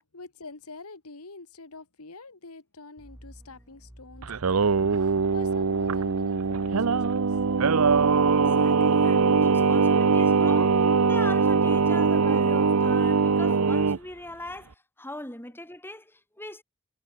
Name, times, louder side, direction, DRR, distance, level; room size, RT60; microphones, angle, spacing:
voice 1, 0.0-7.4, left 3 dB, 80° left, 1.9 m, -46 dB
sound 1, 3.0-8.5, equal, 10° right, 2.1 m, -49 dB
Singing, 4.2-14.0, right 5 dB, 75° right, 0.7 m, -22 dB
voice 2, 8.4-16.6, left 1 dB, 10° left, 4.5 m, -40 dB
head